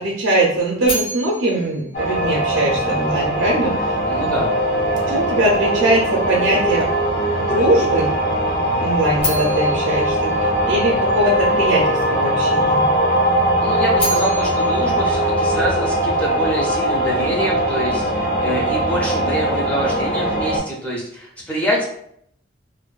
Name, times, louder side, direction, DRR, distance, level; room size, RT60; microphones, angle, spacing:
voice 1, 0.0-4.4 5.1-6.9 7.4-8.1 8.7-12.9, right 1 dB, 75° right, -4 dB, 0.5 m, -21 dB
sound 1, 0.8-3.0 9.2-11.3 13.7-16.1, equal, 70° left, 1.0 m, -31 dB
sound 2, 1.9-20.6, right 1 dB, 55° left, 0.6 m, -20 dB
voice 2, 4.1-4.5 13.6-21.8, right 1 dB, 5° left, -3 dB, 0.4 m, -25 dB
2.5 x 2.2 x 2.2 m, 0.69 s
head